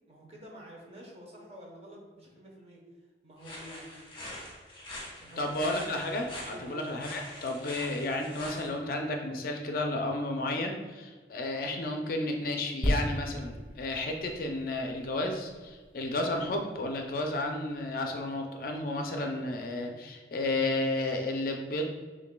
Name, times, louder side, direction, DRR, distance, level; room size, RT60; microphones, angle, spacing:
voice 1, 0.1-2.8 3.2-4.0 5.2-5.8 6.5-6.8, equal, 35° right, -2 dB, 0.9 m, -49 dB
sound 1, 3.4-8.7, left 1 dB, 25° left, 1.0 m, -44 dB
voice 2, 5.4-21.9, left 2 dB, 50° left, 3 dB, 0.4 m, -32 dB
sound 2, 12.8-16.4 17.0-17.1, equal, 10° right, 0.6 m, -34 dB
6.8 x 2.6 x 2.2 m, 1.4 s
head